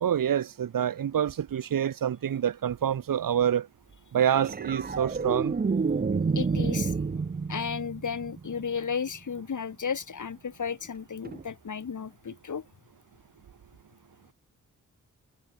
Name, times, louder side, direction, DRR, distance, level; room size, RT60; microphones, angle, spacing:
voice 1, 0.0-3.7 4.1-5.5, right 9 dB, 75° right, 1.8 m, -27 dB
sound 1, 4.3-8.8 11.2-11.4, right 4 dB, 25° right, 0.9 m, -29 dB
voice 2, 6.3-6.9 7.5-12.6, left 6 dB, 60° left, 4.9 m, -33 dB
cardioid pair, 65°, 34 cm